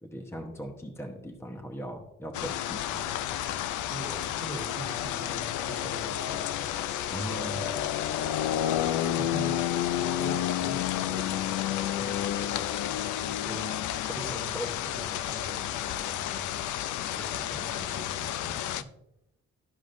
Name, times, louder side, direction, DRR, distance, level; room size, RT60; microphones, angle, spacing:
voice 1, 0.0-2.9 7.1-7.7 14.5-14.6, right 1 dB, 10° left, 3 dB, 1.0 m, -38 dB
sound 1, 2.3-18.8, left 11 dB, 75° left, 0.5 m, -31 dB
voice 2, 2.9-3.2 3.9-6.7 7.7-7.9 8.5-9.6 9.9-11.5 12.0-13.0 13.2-13.8 14.2-16.5 17.1-18.9, right 2 dB, 10° right, -2 dB, 1.6 m, -43 dB
12.0 x 5.1 x 2.6 m, 0.83 s
cardioid pair, 90°, 30 cm